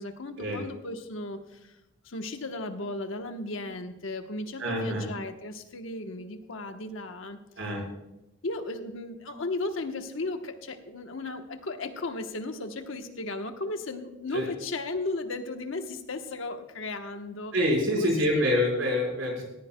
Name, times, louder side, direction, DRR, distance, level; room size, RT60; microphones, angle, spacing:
voice 1, 0.0-1.7 2.0-7.4 8.4-17.5 17.9-18.1 18.4-18.5, left 2 dB, 85° left, 6 dB, 1.0 m, -35 dB
voice 2, 4.6-5.1 7.6-7.8 14.3-14.5 17.5-19.4, left 1 dB, 85° right, -1 dB, 4.8 m, -26 dB
18.0 x 14.5 x 2.2 m, 0.96 s
head